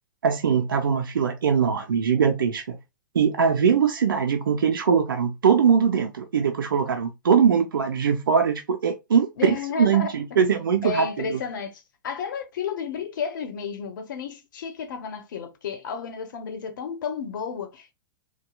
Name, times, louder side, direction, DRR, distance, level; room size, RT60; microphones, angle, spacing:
voice 1, 0.2-2.8 3.1-11.4, right 7 dB, 85° right, 0.5 m, -22 dB
voice 2, 9.4-10.4 10.8-17.9, left 6 dB, 70° left, 0.9 m, -32 dB
4.2 x 2.3 x 2.3 m
hypercardioid pair, 115°, 11 cm